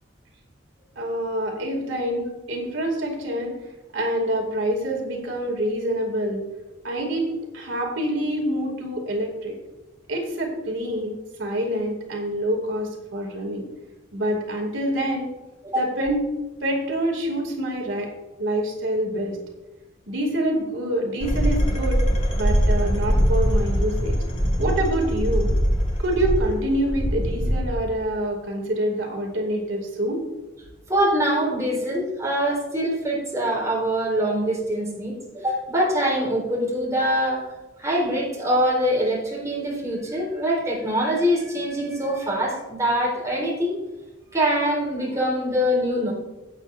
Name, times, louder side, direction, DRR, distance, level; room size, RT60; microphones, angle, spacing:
voice 1, 1.0-3.5 3.9-6.4 6.8-9.6 10.1-13.6 14.1-15.3 15.7-16.2 16.6-18.1 18.4-19.4 20.1-22.0 22.4-24.2 24.6-25.5 26.0-30.2, right 1 dB, 75° right, 0 dB, 2.6 m, -26 dB
sound 1, 21.2-27.9, equal, 30° left, 1.7 m, -22 dB
voice 2, 30.9-37.5 37.8-43.8 44.3-46.1, equal, 15° right, -5 dB, 3.9 m, -24 dB
16.5 x 8.8 x 2.6 m, 1.1 s
head